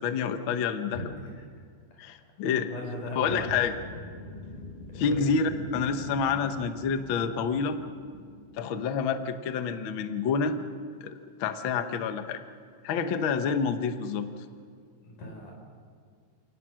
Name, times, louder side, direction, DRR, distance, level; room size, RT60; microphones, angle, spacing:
voice 1, 0.0-1.0 2.0-2.7 3.1-3.7 5.0-7.8 8.6-10.6 11.0-11.1 11.4-12.4 12.8-14.3, left 6 dB, 60° left, 9 dB, 1.3 m, -28 dB
voice 2, 0.9-1.5 1.9-2.0 2.5-3.6 4.9-5.2 15.0-15.5, left 1 dB, 80° left, 1 dB, 6.4 m, -39 dB
sound 1, 3.2-8.8, left 2 dB, 20° left, 1.5 m, -44 dB
29.0 x 18.5 x 6.3 m, 2.2 s
omnidirectional pair, 3.6 m